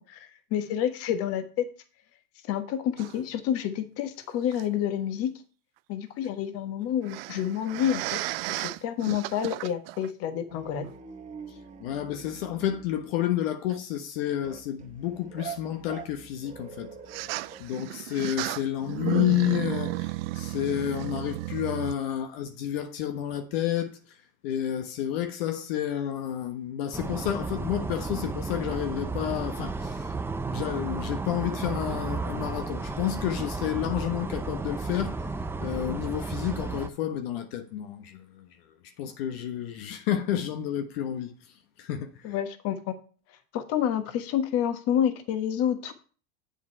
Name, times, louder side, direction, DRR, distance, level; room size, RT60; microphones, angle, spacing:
voice 1, 0.0-1.7 2.5-5.3 5.9-8.2 8.5-10.9 42.2-43.0 43.5-45.9, left 10 dB, 50° left, 1.3 m, -29 dB
sound 1, 3.0-3.2 4.5-4.6 7.0-10.1 10.8-10.9 13.7-13.8 17.1-22.0, right 20 dB, 70° right, 0.5 m, -34 dB
sound 2, 10.5-13.0 14.4-17.6, right 6 dB, 25° right, 1.5 m, -44 dB
voice 2, 11.5-16.9 17.6-23.9 24.4-30.1 30.4-35.2 35.6-38.4 39.0-41.3 41.8-42.3, left 11 dB, 70° left, 1.2 m, -30 dB
sound 3, 26.9-36.9, right 3 dB, 5° right, 0.6 m, -33 dB
7.7 x 7.2 x 4.5 m
supercardioid pair, 120°, 31 cm